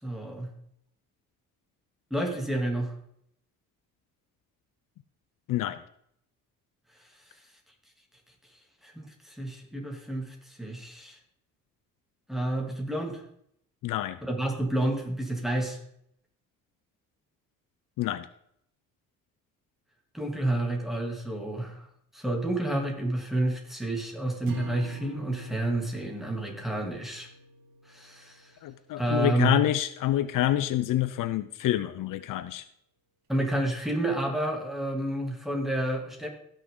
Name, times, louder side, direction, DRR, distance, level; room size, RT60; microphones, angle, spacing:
voice 1, 0.0-0.5 2.1-2.9 8.8-11.2 12.3-13.2 14.2-15.8 20.1-21.9 22.1-27.3 27.9-28.5 29.0-29.6 33.3-36.3, right 1 dB, ahead, 1 dB, 2.9 m, -30 dB
voice 2, 5.5-5.8 13.8-14.2 18.0-18.3 28.6-32.6, left 13 dB, 70° left, 13 dB, 0.7 m, -27 dB
sound 1, 24.5-28.8, right 3 dB, 80° right, 2.2 m, -45 dB
16.5 x 6.6 x 3.9 m, 0.70 s
cardioid pair, 100°, 33 cm